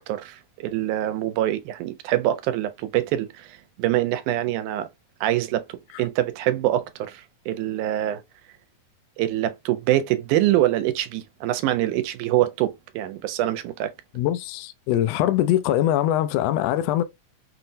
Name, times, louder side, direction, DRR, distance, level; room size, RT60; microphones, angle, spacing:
voice 1, 0.0-4.9 5.2-5.6 6.0-8.2 9.2-13.9, right 13 dB, 85° right, 2.0 m, -24 dB
voice 2, 14.1-17.0, left 12 dB, 90° left, 1.4 m, -22 dB
5.8 x 2.0 x 2.6 m
omnidirectional pair, 3.5 m